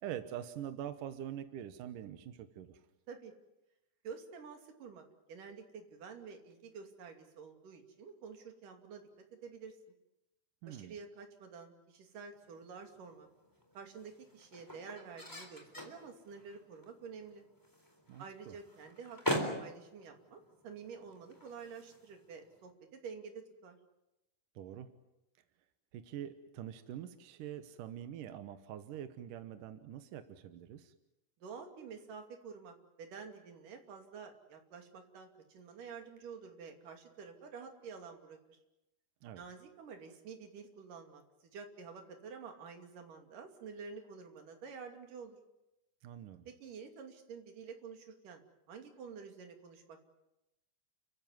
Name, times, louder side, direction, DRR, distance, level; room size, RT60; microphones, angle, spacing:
voice 1, 0.0-2.8 10.6-10.9 18.1-18.5 24.6-24.9 25.9-30.9 39.2-39.4 46.0-46.5, right 10 dB, 70° right, 9 dB, 2.0 m, -44 dB
voice 2, 4.0-9.1 9.4-9.8 10.6-13.3 13.7-17.4 18.2-23.8 31.4-38.6 39.4-45.4 46.5-48.4 48.7-50.0, right 5 dB, 50° right, 4 dB, 3.8 m, -49 dB
sound 1, 12.3-22.7, equal, 5° left, 3.2 m, -43 dB
30.0 x 15.5 x 9.5 m, 0.94 s
omnidirectional pair, 5.2 m